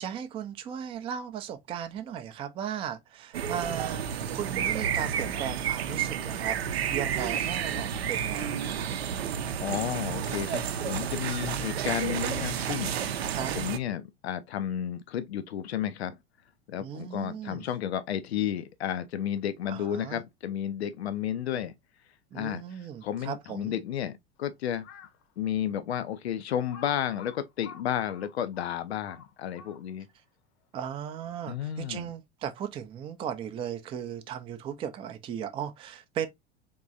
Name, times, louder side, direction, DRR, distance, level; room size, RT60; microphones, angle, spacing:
voice 1, 0.0-8.9 11.4-11.7 13.3-13.5 16.8-17.6 19.7-20.2 22.3-23.8 30.7-36.3, right 9 dB, 15° right, 0.4 m, -37 dB
sound 1, 3.3-13.8, right 8 dB, 65° right, 0.6 m, -31 dB
voice 2, 9.6-12.9 13.5-16.2 16.7-21.7 22.3-24.8 25.4-30.1 31.5-32.1, left 10 dB, 75° left, 0.5 m, -32 dB
Crow, 24.8-25.2 25.8-25.9 26.7-30.1, left 6 dB, 40° left, 0.7 m, -49 dB
3.7 x 3.0 x 2.5 m
figure-of-eight pair, 85°, 33 cm